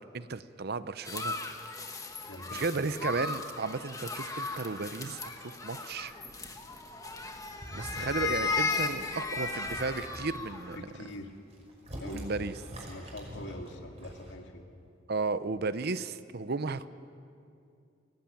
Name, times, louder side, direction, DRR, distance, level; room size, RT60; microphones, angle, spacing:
voice 1, 0.0-1.3 2.5-6.1 7.7-10.9 12.1-12.5 15.1-16.9, right 4 dB, 55° right, 14 dB, 0.7 m, -34 dB
sound 1, 1.0-10.8, left 4 dB, 20° left, 1.8 m, -36 dB
voice 2, 2.3-2.9 10.8-11.3 12.0-12.3 12.9-14.6, left 1 dB, 65° left, 3 dB, 2.3 m, -44 dB
sound 2, 7.5-8.3 8.5-8.9 9.3-10.3 10.8-14.3, equal, 35° right, 5.6 m, -44 dB
24.5 x 17.5 x 9.1 m, 2.5 s
head